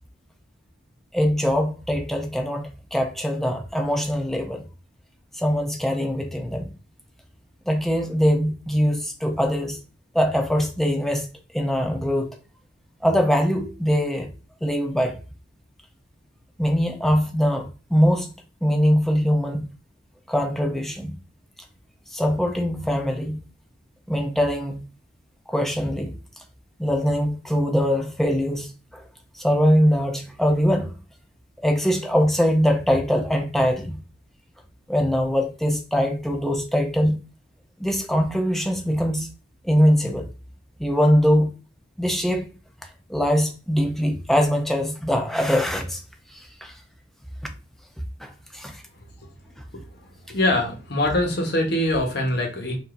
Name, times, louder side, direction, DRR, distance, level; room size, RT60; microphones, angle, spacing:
voice 1, 1.1-4.6 5.4-6.7 7.7-9.8 10.1-11.3 11.5-12.4 13.0-14.3 14.6-15.2 16.6-18.3 18.6-19.7 20.3-21.1 22.1-23.4 24.1-24.9 25.5-26.1 26.8-29.0 29.3-31.0 31.6-34.0 34.9-37.2 37.8-39.3 39.6-40.3 40.8-41.5 42.0-42.5 43.1-46.0 46.3-46.7 48.2-48.8, equal, ahead, 0.5 m, -22 dB
voice 2, 50.3-52.8, left 1 dB, 55° left, 1.0 m, -23 dB
4.8 x 2.6 x 2.5 m
head